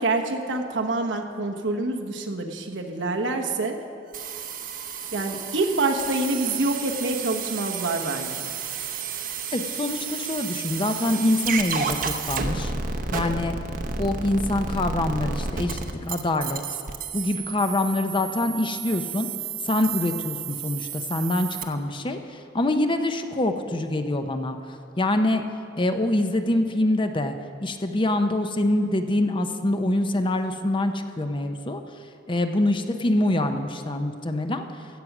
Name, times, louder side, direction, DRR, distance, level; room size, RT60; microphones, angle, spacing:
voice 1, 0.0-3.8 5.1-8.5, right 2 dB, 85° right, 2 dB, 1.2 m, -26 dB
sound 1, 4.1-21.6, right 5 dB, 50° right, 0.8 m, -32 dB
voice 2, 9.5-12.7 13.1-13.6 14.0-16.6 17.1-19.3 19.7-22.2 22.5-24.6 25.0-25.4 25.8-31.8 32.3-34.7, left 1 dB, 25° left, 7 dB, 0.7 m, -25 dB
15.0 x 7.9 x 6.0 m, 2.4 s
head